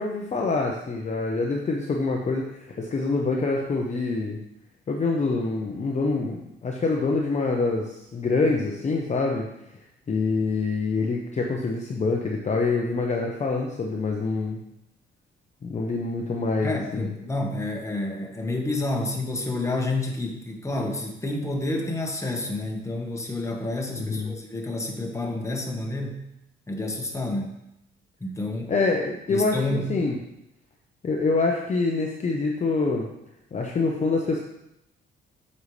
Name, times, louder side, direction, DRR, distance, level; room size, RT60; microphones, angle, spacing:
voice 1, 0.0-4.4 4.9-9.5 10.1-14.6 15.6-17.1 23.9-24.3 28.7-30.2 31.0-33.1 33.5-34.4, left 3 dB, 35° left, 0 dB, 0.9 m, -26 dB
voice 2, 16.6-26.2 26.7-27.5 28.2-28.7 29.3-29.9, left 2 dB, 15° left, 1 dB, 1.5 m, -29 dB
7.8 x 5.5 x 3.3 m, 0.84 s
cardioid pair, 90°, 20 cm